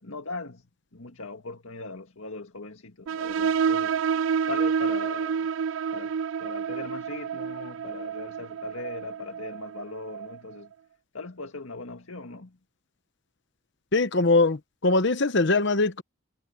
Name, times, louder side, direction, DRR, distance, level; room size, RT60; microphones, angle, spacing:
voice 1, 0.0-0.6 0.9-3.9 4.5-5.5 5.9-6.1 6.4-10.7 11.1-12.6, left 3 dB, 70° left, 1.9 m, -39 dB
sound 1, 3.1-10.4, right 6 dB, 60° right, 0.3 m, -29 dB
voice 2, 13.9-16.0, left 3 dB, 55° left, 0.9 m, -22 dB
head